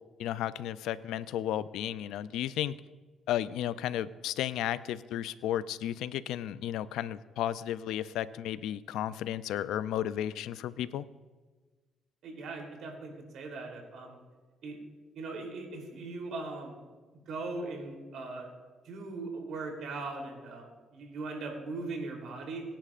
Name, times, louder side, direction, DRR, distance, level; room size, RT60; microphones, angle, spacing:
voice 1, 0.2-2.7 3.3-11.1, left 11 dB, 90° left, 16 dB, 0.4 m, -33 dB
voice 2, 12.2-14.2 14.6-14.8 15.1-16.8 17.1-18.5 18.8-22.6, right 3 dB, 75° right, 1 dB, 3.3 m, -39 dB
23.0 x 10.0 x 2.5 m, 1.3 s
cardioid pair, 90°, 0 cm